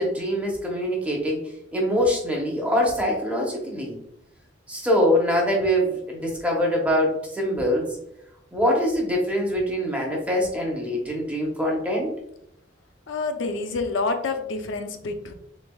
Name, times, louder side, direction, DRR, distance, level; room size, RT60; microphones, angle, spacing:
voice 1, 0.0-1.4 1.7-4.0 4.7-7.9 8.5-12.1, equal, 5° right, -2 dB, 0.8 m, -24 dB
voice 2, 13.1-15.3, left 3 dB, 85° left, 6 dB, 0.5 m, -28 dB
3.5 x 3.3 x 2.2 m, 0.78 s
head